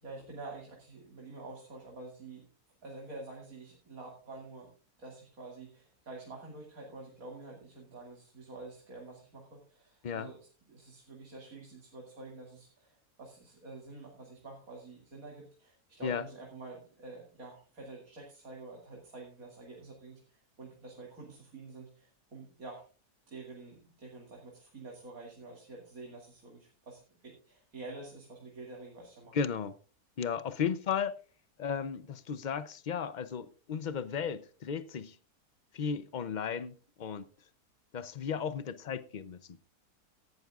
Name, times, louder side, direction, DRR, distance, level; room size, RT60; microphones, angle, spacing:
voice 1, 0.0-2.5 2.8-4.7 5.0-22.8 23.3-29.4, right 3 dB, 65° right, 2.7 m, -48 dB
voice 2, 29.3-29.7 30.2-31.2 31.6-35.2 35.7-37.3 37.9-39.4, left 7 dB, 65° left, 0.4 m, -35 dB
17.5 x 12.0 x 2.4 m
omnidirectional pair, 1.6 m